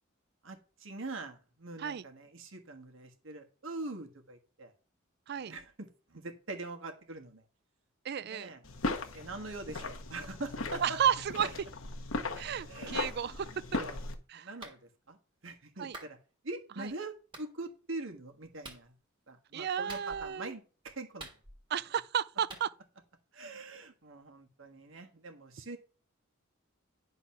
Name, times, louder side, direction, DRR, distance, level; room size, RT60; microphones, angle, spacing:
voice 1, 0.4-4.7 5.3-7.5 8.2-8.6 9.1-11.0 11.4-11.5 12.7-12.9 13.2-13.4 13.8-14.0 14.3-15.2 15.4-16.2 16.4-18.9 19.3-21.3 23.3-25.8, right 2 dB, 65° right, 1.5 m, -43 dB
voice 2, 8.0-8.5 10.8-11.5 12.4-13.8 14.3-14.5 15.8-16.0 16.8-16.9 19.5-20.5 21.7-22.7, right 8 dB, 50° right, 0.4 m, -32 dB
sound 1, 8.6-14.1, left 3 dB, 75° left, 1.3 m, -38 dB
Clapping, 14.6-14.8 15.9-16.2 17.3-17.5 18.6-18.9 19.9-20.3 21.2-21.8 22.5-22.7, right 2 dB, 25° right, 1.8 m, -47 dB
10.5 x 4.0 x 5.8 m
head